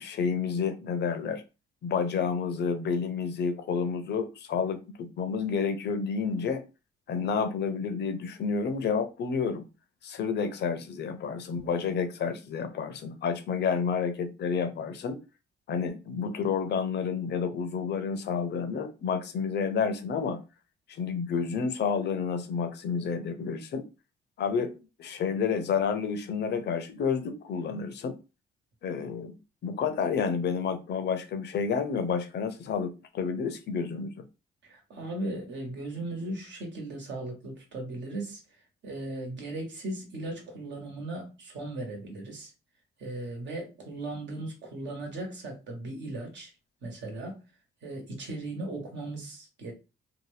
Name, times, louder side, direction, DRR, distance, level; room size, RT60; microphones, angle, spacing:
voice 1, 0.0-1.4 1.8-6.6 7.1-9.6 10.0-15.2 15.7-20.4 20.9-23.9 24.4-28.1 28.8-29.4 29.6-34.2, left 6 dB, 60° left, 0.6 m, -30 dB
voice 2, 34.6-38.4 38.8-42.5 43.0-46.5 46.8-47.4 47.8-49.7, right 2 dB, 65° right, 1.2 m, -37 dB
2.7 x 2.1 x 3.2 m
cardioid pair, 90°, 20 cm